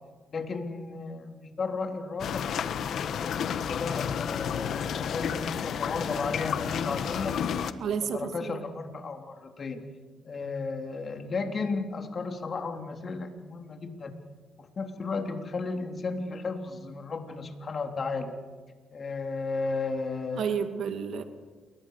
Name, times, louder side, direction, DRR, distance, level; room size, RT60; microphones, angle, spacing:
voice 1, 0.3-2.5 3.2-7.4 8.1-9.8 10.2-14.1 14.6-18.4 18.9-20.5, left 4 dB, 45° left, 4 dB, 3.6 m, -34 dB
sound 1, 2.2-7.7, left 8 dB, 65° left, 1.4 m, -31 dB
voice 2, 7.8-8.6 20.3-21.2, right 7 dB, 70° right, 7 dB, 2.4 m, -31 dB
29.5 x 22.0 x 6.7 m, 1.4 s
cardioid pair, 90°, 0 cm